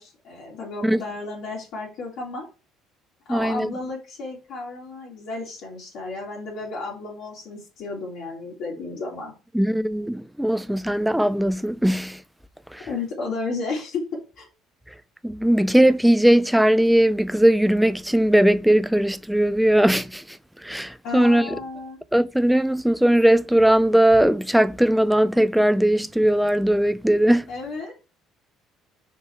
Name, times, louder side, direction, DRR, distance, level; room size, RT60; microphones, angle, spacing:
voice 1, 0.0-2.5 3.3-9.3 12.8-14.1 14.4-14.5 21.0-22.0 27.5-27.9, left 3 dB, 65° left, 2.7 m, -33 dB
voice 2, 3.3-3.7 9.5-12.2 12.7-12.9 15.2-20.2 20.6-21.5 22.1-27.5, right 1 dB, ahead, 0.3 m, -19 dB
5.2 x 5.2 x 4.6 m
cardioid pair, 125°, 0 cm